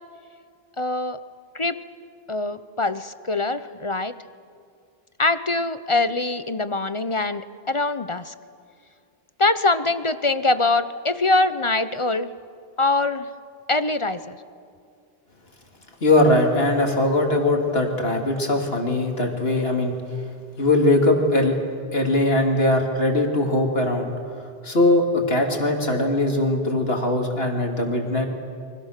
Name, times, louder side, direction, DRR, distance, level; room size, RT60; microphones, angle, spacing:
voice 1, 0.8-1.2 1.5-1.8 2.3-4.1 5.2-8.3 9.4-12.3 12.8-13.3 13.7-14.4, left 2 dB, 30° left, 12 dB, 0.8 m, -23 dB
voice 2, 16.0-20.0 20.6-21.5 21.9-24.1 24.6-28.3, left 2 dB, 70° left, 2 dB, 3.2 m, -20 dB
29.5 x 24.5 x 6.7 m, 2.3 s
omnidirectional pair, 1.1 m